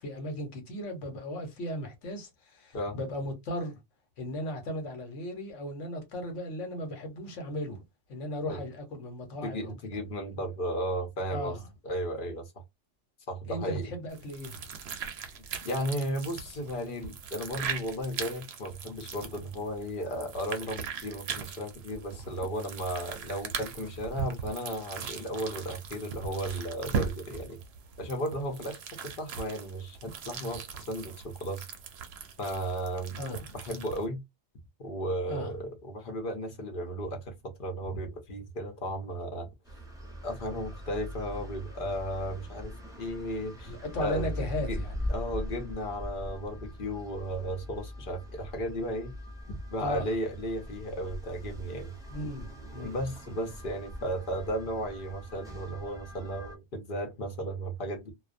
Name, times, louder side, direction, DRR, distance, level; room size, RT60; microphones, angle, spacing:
voice 1, 0.0-3.8 4.2-7.8 8.1-9.7 11.3-11.6 13.5-14.8 33.1-33.6 35.3-35.5 43.7-44.9 49.8-50.1 52.1-53.0 53.3-53.5, left 1 dB, 85° left, 1.2 m, -36 dB
voice 2, 9.4-11.6 11.8-12.5 13.3-13.9 15.6-27.6 28.0-31.7 32.4-34.2 34.8-39.5 40.2-43.7 44.0-44.3 44.7-44.8 45.1-49.1 49.5-51.9 52.8-58.1, equal, 50° left, 0.8 m, -35 dB
sound 1, 14.1-34.1, right 6 dB, 65° right, 0.8 m, -40 dB
sound 2, 39.6-56.6, left 1 dB, 5° right, 0.6 m, -41 dB
2.4 x 2.1 x 2.5 m
omnidirectional pair, 1.2 m